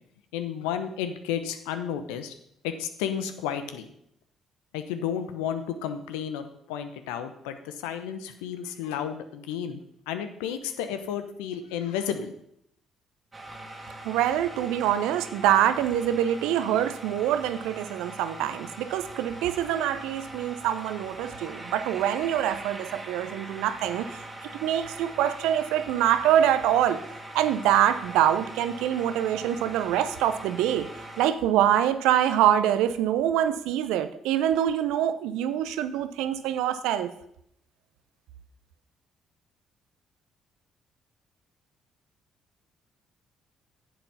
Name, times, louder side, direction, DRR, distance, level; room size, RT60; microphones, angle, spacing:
voice 1, 0.3-2.3 2.6-3.9 4.7-9.8 10.1-12.3, left 8 dB, 75° left, 9 dB, 0.9 m, -32 dB
sound 1, 13.3-31.3, right 1 dB, 25° right, 2.0 m, -42 dB
voice 2, 14.0-24.2 24.6-27.0 27.3-30.9 31.2-37.1, right 11 dB, 70° right, 12 dB, 0.7 m, -25 dB
10.0 x 7.9 x 5.7 m, 0.75 s
hypercardioid pair, 45°, 0 cm